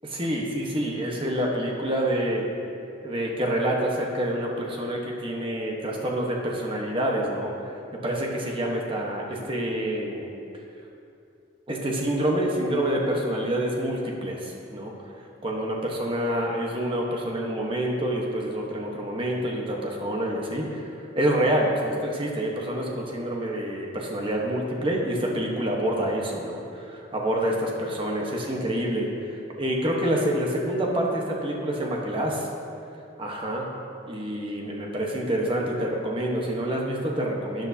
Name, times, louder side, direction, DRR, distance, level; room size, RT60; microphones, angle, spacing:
voice 1, 0.0-2.4 3.0-7.5 8.0-10.3 11.7-14.9 15.4-20.9 21.1-32.5 33.2-33.7 34.1-37.7, right 1 dB, 30° right, -1 dB, 1.2 m, -27 dB
12.5 x 8.8 x 2.8 m, 2.6 s
head